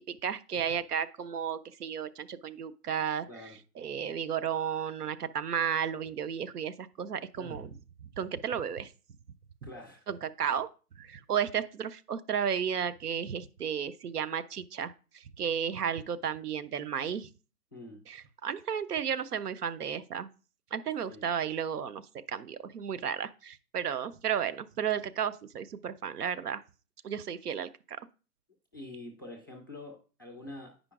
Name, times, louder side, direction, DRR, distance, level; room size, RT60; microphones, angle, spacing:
voice 1, 0.1-3.3 3.8-7.7 8.2-8.9 10.1-10.7 11.0-17.3 18.1-20.3 20.7-22.0 22.3-26.6 27.0-28.0, right 8 dB, 90° right, 0.6 m, -33 dB
voice 2, 3.3-3.6 7.4-7.8 9.6-10.1 17.7-18.0 21.1-21.3 28.7-30.9, left 1 dB, 15° left, 0.3 m, -46 dB
9.6 x 5.0 x 2.4 m
figure-of-eight pair, 130°, 45 cm